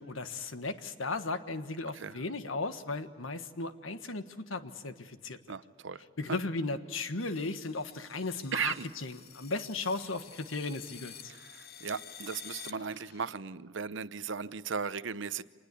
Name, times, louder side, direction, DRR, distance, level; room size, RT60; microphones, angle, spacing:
voice 1, 0.0-5.5 6.2-11.1, left 3 dB, 80° left, 10 dB, 1.5 m, -36 dB
voice 2, 5.5-6.0 6.3-6.4 8.5-8.9 11.3-15.4, right 6 dB, 65° right, 16 dB, 0.8 m, -36 dB
sound 1, 7.2-13.3, left 8 dB, 50° left, 1.2 m, -50 dB
26.0 x 20.0 x 8.4 m, 1.5 s
head